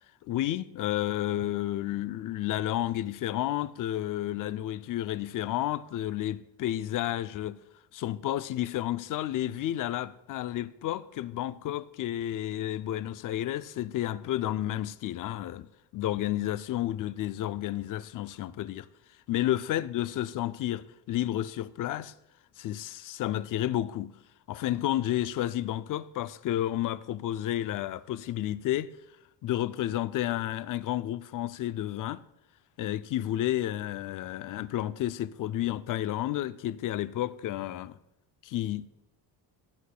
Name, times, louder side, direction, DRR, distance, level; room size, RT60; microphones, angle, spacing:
voice 1, 0.3-7.6 7.9-15.7 15.9-18.9 19.3-22.1 22.6-24.1 24.5-28.9 29.4-32.2 32.8-38.0 38.4-38.9, left 13 dB, 50° left, 0.5 m, -31 dB
16.0 x 8.2 x 2.2 m
cardioid pair, 105°, 43 cm